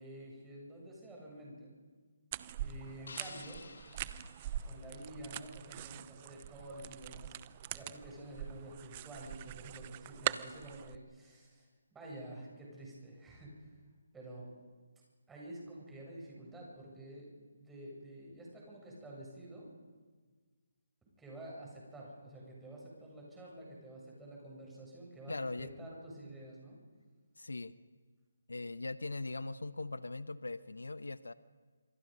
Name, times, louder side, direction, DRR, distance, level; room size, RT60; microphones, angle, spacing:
voice 1, 0.0-1.7 2.6-3.6 4.6-13.7 14.1-14.5 15.3-19.7 21.2-26.8, right 1 dB, 5° right, -3 dB, 8.0 m, -49 dB
sound 1, 2.3-11.0, right 11 dB, 30° right, 0.8 m, -43 dB
sound 2, 3.1-5.3, left 4 dB, 70° left, 2.4 m, -53 dB
voice 2, 25.3-25.7 27.4-27.7 28.5-31.3, left 2 dB, 85° left, 14 dB, 1.0 m, -40 dB
28.0 x 27.5 x 5.4 m, 1.5 s
figure-of-eight pair, 155°, 0 cm